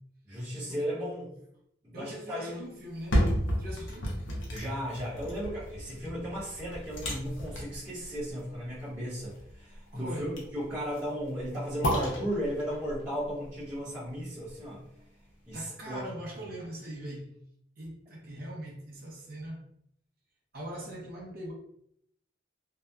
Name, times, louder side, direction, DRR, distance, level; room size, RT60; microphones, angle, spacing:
voice 1, 0.3-1.4 1.9-2.6 4.5-14.8 15.5-16.1, equal, 15° right, -14 dB, 0.9 m, -35 dB
voice 2, 1.9-3.2 3.6-4.2 9.9-10.4 15.5-17.4 17.8-19.6 20.5-21.5, right 1 dB, 50° right, -2 dB, 0.6 m, -41 dB
sound 1, 2.8-14.9 15.3-15.4, equal, 70° left, 0.6 m, -34 dB
2.7 x 2.1 x 2.3 m, 0.71 s
head